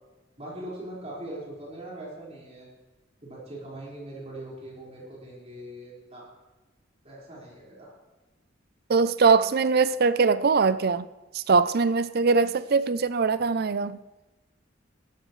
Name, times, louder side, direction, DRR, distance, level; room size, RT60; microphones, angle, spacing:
voice 1, 0.4-2.7 3.2-6.3 7.0-7.9, right 1 dB, 30° right, -5 dB, 5.0 m, -41 dB
voice 2, 8.9-11.1 11.3-14.0, right 4 dB, 50° right, 15 dB, 0.5 m, -22 dB
17.0 x 13.0 x 3.2 m, 1.1 s
head